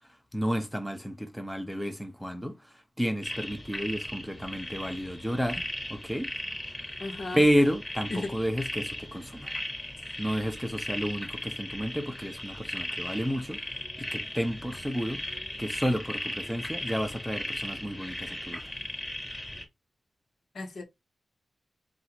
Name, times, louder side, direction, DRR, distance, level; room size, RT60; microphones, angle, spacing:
voice 1, 0.3-5.6 5.9-6.3 7.3-9.5 10.2-13.6 14.0-15.2 15.6-18.7, equal, ahead, 0.7 m, -31 dB
sound 1, 3.2-19.6, left 1 dB, 20° left, 1.4 m, -37 dB
voice 2, 7.0-7.5 8.1-8.3 20.5-20.8, left 2 dB, 65° left, 1.2 m, -34 dB
4.0 x 2.5 x 4.3 m
wide cardioid pair, 100°, 0 cm